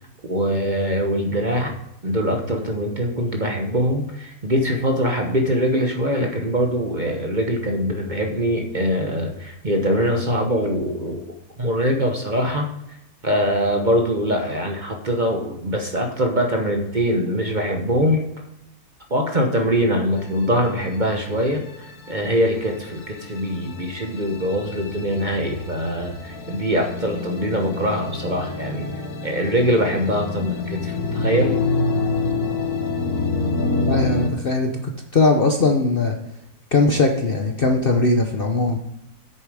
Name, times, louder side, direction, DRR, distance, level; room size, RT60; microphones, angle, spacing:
voice 1, 0.2-1.7 2.0-11.2 11.6-13.0 13.2-18.3 19.1-28.9 29.2-31.5, equal, 35° right, 3 dB, 1.0 m, -23 dB
sound 1, 20.2-34.3, left 3 dB, 65° left, 1.5 m, -27 dB
voice 2, 33.9-34.7 35.1-36.1 36.7-38.8, left 3 dB, 45° left, 3 dB, 0.8 m, -19 dB
9.0 x 6.9 x 4.9 m, 0.84 s
omnidirectional pair, 1.7 m